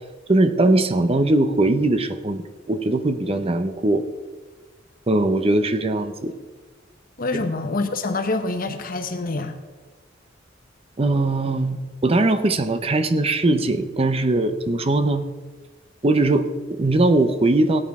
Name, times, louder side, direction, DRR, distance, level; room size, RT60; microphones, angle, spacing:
voice 1, 0.3-4.0 5.1-6.4 11.0-11.8 12.0-15.3 16.0-17.8, right 2 dB, 30° right, 10 dB, 0.7 m, -20 dB
voice 2, 7.2-9.6, left 3 dB, 50° left, 7 dB, 1.0 m, -26 dB
17.0 x 9.4 x 3.6 m, 1.3 s
head